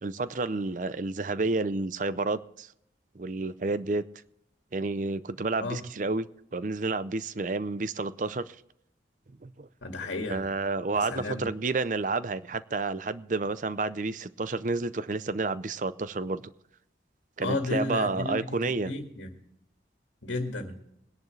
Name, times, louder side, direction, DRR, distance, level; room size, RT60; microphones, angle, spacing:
voice 1, 0.0-2.7 3.1-4.0 4.7-6.3 6.5-8.6 9.4-9.7 10.3-16.4 17.4-18.9, right 3 dB, 45° right, 0.5 m, -30 dB
voice 2, 9.8-10.5 10.9-11.4 17.4-18.6 18.8-19.3 20.2-20.8, left 2 dB, 85° left, 2.0 m, -33 dB
20.5 x 10.5 x 3.2 m
head